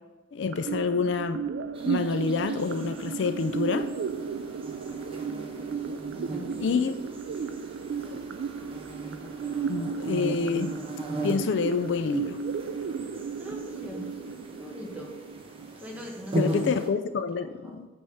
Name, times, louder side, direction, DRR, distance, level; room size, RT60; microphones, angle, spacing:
voice 1, 0.3-1.4 1.9-3.9 6.6-6.9 9.7-10.8 11.2-12.4 16.4-17.9, left 5 dB, 70° left, 10 dB, 0.4 m, -27 dB
sound 1, 0.5-16.5, right 6 dB, 70° right, 0.3 m, -34 dB
sound 2, 1.7-16.9, right 1 dB, 30° right, 1.0 m, -38 dB
voice 2, 6.3-6.8 13.4-14.1 14.6-15.1 15.8-16.6 17.2-17.8, left 1 dB, 10° right, -1 dB, 1.2 m, -41 dB
8.0 x 3.5 x 5.6 m, 1.1 s
head